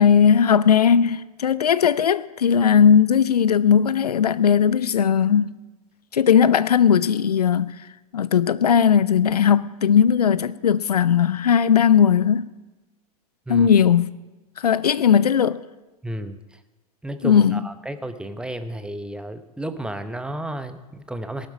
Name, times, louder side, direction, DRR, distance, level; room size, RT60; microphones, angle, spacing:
voice 1, 0.0-5.5 6.1-7.7 8.1-12.5 13.5-14.1 14.6-15.6 17.2-17.6, left 7 dB, 75° left, 0.6 m, -18 dB
voice 2, 16.0-16.4 17.0-21.5, right 1 dB, 5° right, 0.9 m, -32 dB
18.5 x 11.5 x 5.2 m
figure-of-eight pair, 95°, 20 cm